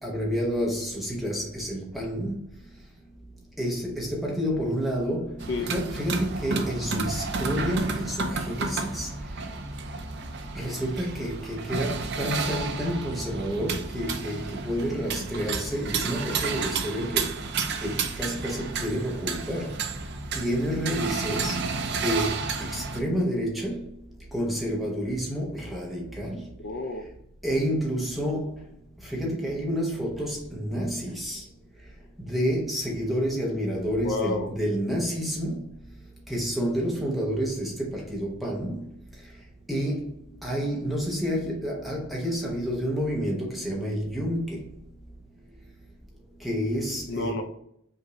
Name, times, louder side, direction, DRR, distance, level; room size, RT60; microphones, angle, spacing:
voice 1, 0.0-2.4 3.6-9.1 10.5-17.4 17.8-19.8 20.3-23.9 24.3-26.5 27.4-28.6 29.0-31.5 32.2-35.7 36.3-38.9 39.7-44.7 46.4-47.4, equal, ahead, 0.8 m, -29 dB
sound 1, 5.4-23.0, right 4 dB, 50° right, 0.5 m, -31 dB
voice 2, 26.6-27.0 34.0-34.5 47.1-47.4, left 3 dB, 55° left, 0.4 m, -30 dB
5.5 x 2.6 x 3.0 m
head